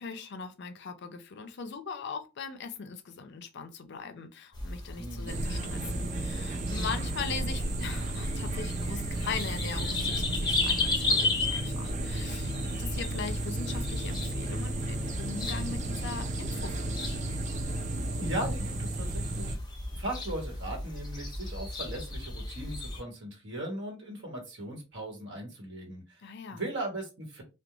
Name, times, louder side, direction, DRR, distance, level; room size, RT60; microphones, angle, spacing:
voice 1, 0.0-17.2 26.2-26.7, left 5 dB, 60° left, 0.5 m, -40 dB
sound 1, 4.5-23.0, left 2 dB, 20° left, 0.7 m, -35 dB
voice 2, 4.9-5.4 18.1-19.6 19.9-26.2 26.5-27.4, right 1 dB, 65° right, 1.1 m, -38 dB
sound 2, 5.3-19.6, right 2 dB, 35° right, 0.4 m, -34 dB
2.4 x 2.2 x 2.9 m
head